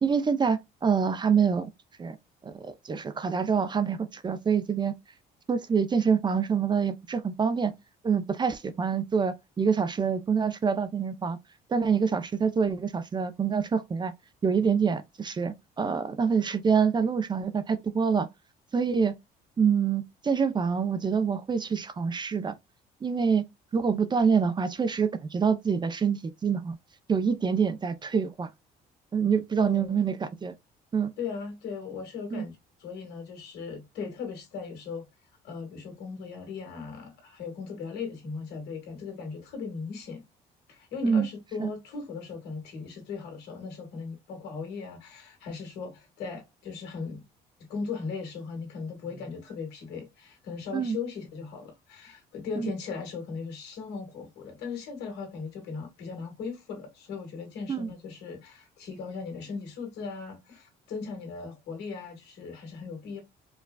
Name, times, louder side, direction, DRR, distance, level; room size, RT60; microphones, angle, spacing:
voice 1, 0.0-1.7 2.0-2.2 2.4-4.9 5.5-7.7 8.0-11.4 11.7-14.1 14.4-18.3 18.7-19.1 19.6-22.5 23.0-23.4 23.7-26.8 27.1-28.5 29.1-30.5 30.9-31.1 32.3-32.4 41.0-41.3 41.6-41.7 50.7-51.0 52.6-52.7 57.7-57.9, right 6 dB, 25° right, 0.5 m, -26 dB
voice 2, 29.6-30.0 31.2-32.5 32.8-35.1 35.4-40.3 40.7-47.3 47.7-63.2, left 5 dB, 80° left, 1.8 m, -38 dB
4.6 x 2.3 x 2.2 m
cardioid pair, 110°, 17 cm